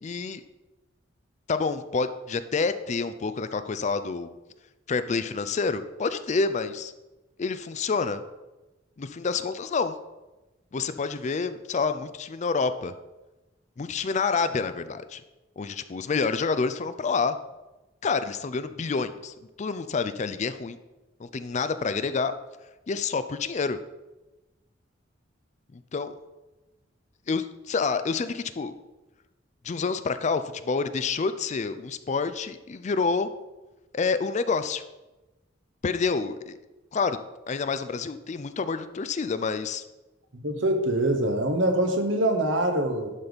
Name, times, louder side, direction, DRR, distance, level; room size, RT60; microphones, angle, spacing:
voice 1, 0.0-0.4 1.5-4.3 4.9-6.9 7.4-8.2 9.0-9.9 10.7-12.9 13.8-15.2 15.6-17.4 18.0-20.8 21.2-22.4 22.9-23.8 25.7-26.2 27.3-28.7 29.6-33.3 33.9-34.8 35.8-36.6 36.9-37.2 37.5-39.8, left 4 dB, 35° left, 11 dB, 0.4 m, -28 dB
voice 2, 40.3-43.1, right 1 dB, 70° right, 5 dB, 1.2 m, -24 dB
11.5 x 4.1 x 5.1 m, 1.1 s
head